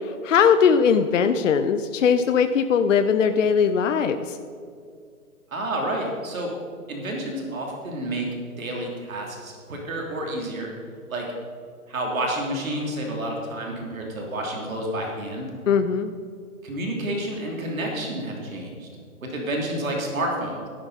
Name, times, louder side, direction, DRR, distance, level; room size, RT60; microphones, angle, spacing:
voice 1, 0.2-4.4 15.7-16.1, left 6 dB, 60° left, 9 dB, 0.7 m, -20 dB
voice 2, 5.5-6.5 6.9-8.3 8.6-10.7 11.1-11.2 11.9-15.5 16.6-18.9 19.2-20.6, right 1 dB, 65° right, 0 dB, 3.1 m, -29 dB
12.0 x 12.0 x 4.1 m, 2.3 s
hypercardioid pair, 140°, 44 cm